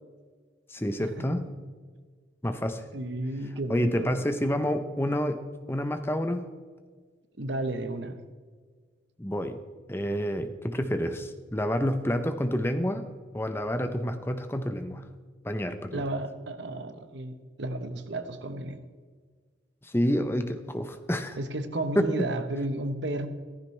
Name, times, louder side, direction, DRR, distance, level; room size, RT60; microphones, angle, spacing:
voice 1, 0.7-1.5 2.4-2.8 3.7-6.4 9.2-9.6 9.9-13.1 13.3-15.0 15.4-16.0 19.8-21.4 22.0-22.3, equal, 15° left, 8 dB, 0.7 m, -28 dB
voice 2, 2.9-4.2 7.4-8.2 15.9-18.8 21.4-23.3, right 1 dB, 80° right, 9 dB, 1.1 m, -32 dB
15.0 x 14.5 x 3.3 m, 1.6 s
head